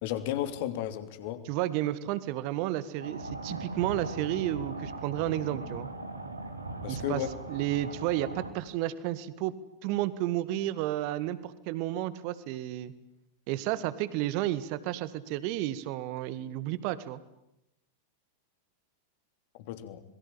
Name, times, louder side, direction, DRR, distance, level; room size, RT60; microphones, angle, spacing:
voice 1, 0.0-1.4 6.8-7.3 19.7-20.0, left 12 dB, 50° left, 10 dB, 3.2 m, -33 dB
voice 2, 1.5-5.9 6.9-9.5 9.8-12.9 13.5-17.2, right 14 dB, 45° right, 15 dB, 2.0 m, -32 dB
sound 1, 3.0-8.5, right 2 dB, 80° right, 3.4 m, -39 dB
27.0 x 22.5 x 8.9 m, 0.85 s
figure-of-eight pair, 90°, 0 cm